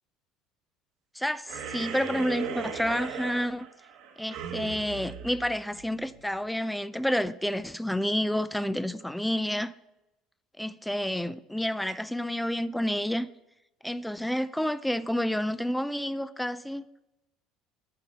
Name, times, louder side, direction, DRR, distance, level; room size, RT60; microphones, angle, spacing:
voice 1, 1.1-3.7 4.2-9.7 10.6-13.3 13.8-16.8, equal, 5° left, 0.4 m, -29 dB
sound 1, 1.5-6.2, right 7 dB, 65° right, 1.1 m, -38 dB
7.9 x 4.6 x 6.8 m
supercardioid pair, 105°, 0 cm